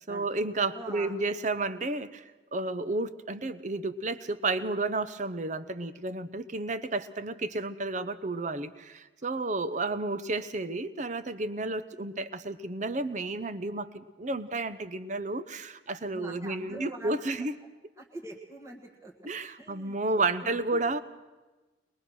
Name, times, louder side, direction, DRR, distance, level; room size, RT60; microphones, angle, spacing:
voice 1, 0.1-2.2 2.5-17.6 19.2-21.0, right 2 dB, 40° right, 13 dB, 0.8 m, -32 dB
voice 2, 0.7-1.1 15.9-17.4 18.0-19.1 19.6-20.9, right 2 dB, 15° right, -2 dB, 1.7 m, -44 dB
22.0 x 22.0 x 6.3 m, 1.2 s
head